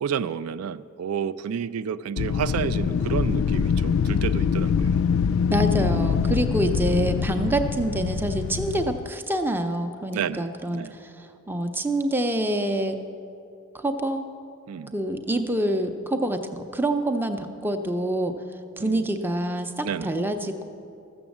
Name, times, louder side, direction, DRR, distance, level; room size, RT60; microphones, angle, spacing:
voice 1, 0.0-5.0 10.1-10.5 10.7-10.9 14.7-14.9 18.8-19.0 19.8-20.1, right 7 dB, 85° right, 13 dB, 0.3 m, -30 dB
Wind, 2.2-9.1, left 6 dB, 70° left, 0.3 m, -24 dB
voice 2, 5.5-11.1 11.5-13.0 13.7-14.3 14.9-16.4 16.7-18.3 18.8-20.7, right 1 dB, 10° right, 6 dB, 0.5 m, -26 dB
14.0 x 7.0 x 7.2 m, 2.7 s
head